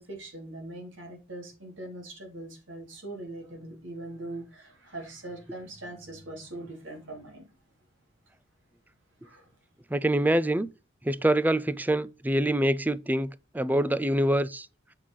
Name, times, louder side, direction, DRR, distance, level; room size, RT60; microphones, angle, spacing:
voice 1, 0.0-7.5 9.2-9.4, right 2 dB, 75° right, 3.7 m, -41 dB
voice 2, 9.9-10.7 11.0-14.7, right 1 dB, 10° right, 0.4 m, -25 dB
7.7 x 5.7 x 4.8 m
head